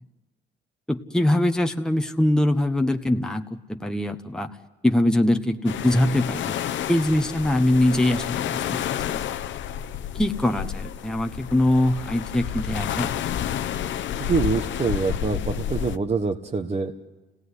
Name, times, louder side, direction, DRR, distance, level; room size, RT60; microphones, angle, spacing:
voice 1, 0.9-3.4 3.7-4.5 4.8-6.5 6.9-9.2 10.1-13.1, left 1 dB, 5° left, 4 dB, 1.2 m, -22 dB
sound 1, 5.7-16.0, left 10 dB, 70° left, 0.9 m, -30 dB
voice 2, 14.2-16.9, right 4 dB, 35° right, 5 dB, 1.2 m, -25 dB
29.5 x 17.0 x 9.8 m, 1.2 s
cardioid pair, 90°, 20 cm